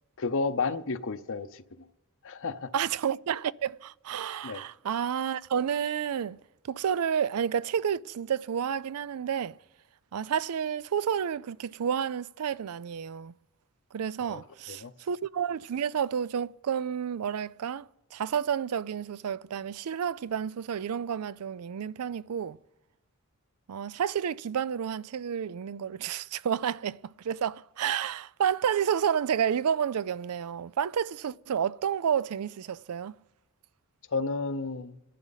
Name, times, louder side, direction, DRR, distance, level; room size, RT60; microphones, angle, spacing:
voice 1, 0.2-1.9 2.2-2.7 4.4-4.6 14.2-14.4 14.7-14.9 34.1-35.0, left 4 dB, 60° left, 0.7 m, -32 dB
voice 2, 2.7-6.4 6.6-9.6 10.1-13.3 13.9-22.6 23.7-33.2, right 8 dB, 80° right, 0.4 m, -30 dB
27.5 x 11.0 x 4.0 m
head